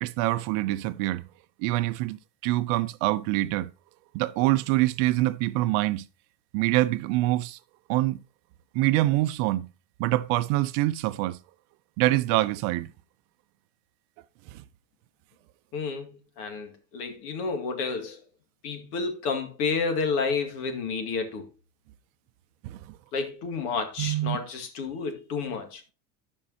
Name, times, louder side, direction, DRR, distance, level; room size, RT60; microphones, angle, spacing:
voice 1, 0.0-1.3 1.6-3.7 4.1-6.0 6.5-7.6 7.9-8.2 8.7-9.7 10.0-11.4 12.0-12.9 14.5-14.6 22.6-23.0 24.0-24.4, right 17 dB, 50° right, 0.6 m, -25 dB
voice 2, 15.7-18.2 18.6-21.5 23.1-25.9, left 4 dB, 70° left, 2.3 m, -30 dB
16.0 x 5.4 x 2.7 m
supercardioid pair, 150°, 48 cm